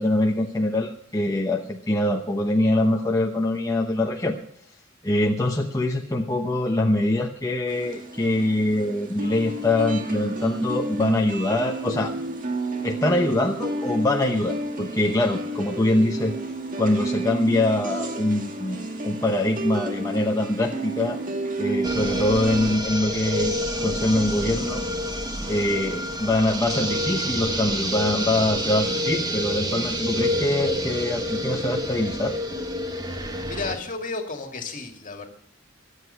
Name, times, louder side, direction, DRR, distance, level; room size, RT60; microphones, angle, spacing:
voice 1, 0.0-4.4 5.0-12.1 12.8-16.3 16.8-21.2 21.6-24.8 25.5-32.3, left 1 dB, 15° left, 1 dB, 0.9 m, -24 dB
sound 1, 7.7-22.8, right 2 dB, 45° right, 1.8 m, -31 dB
sound 2, 21.8-33.8, equal, 20° right, 1.5 m, -28 dB
voice 2, 33.5-35.3, left 3 dB, 40° left, 4 dB, 2.3 m, -32 dB
23.5 x 8.3 x 5.7 m, 0.63 s
head